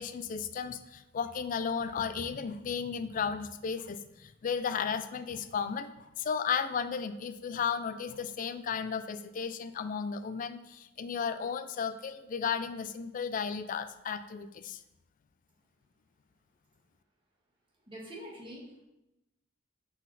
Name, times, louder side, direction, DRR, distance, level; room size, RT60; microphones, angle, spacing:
voice 1, 0.0-14.8, left 6 dB, 40° left, 11 dB, 0.3 m, -34 dB
voice 2, 17.9-18.8, equal, 25° right, -3 dB, 1.5 m, -45 dB
6.2 x 4.1 x 4.0 m, 0.93 s
head